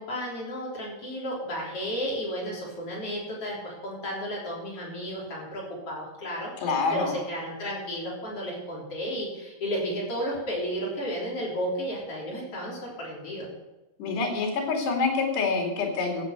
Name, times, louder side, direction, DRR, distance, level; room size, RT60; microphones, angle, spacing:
voice 1, 0.0-6.5 6.9-13.5, equal, 35° left, -4 dB, 4.4 m, -33 dB
voice 2, 6.6-7.1 14.0-16.2, left 4 dB, 80° left, 1 dB, 4.6 m, -26 dB
15.5 x 7.9 x 6.7 m, 1.0 s
omnidirectional pair, 4.8 m